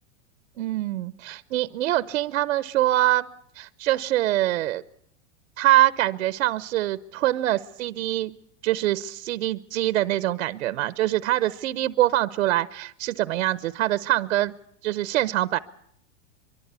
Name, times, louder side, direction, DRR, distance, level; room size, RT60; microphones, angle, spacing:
voice 1, 0.6-3.3 3.6-4.8 5.6-8.3 8.6-14.5 14.8-15.6, right 14 dB, 85° right, 16 dB, 0.9 m, -24 dB
24.0 x 23.5 x 8.2 m, 0.73 s
supercardioid pair, 175°, 38 cm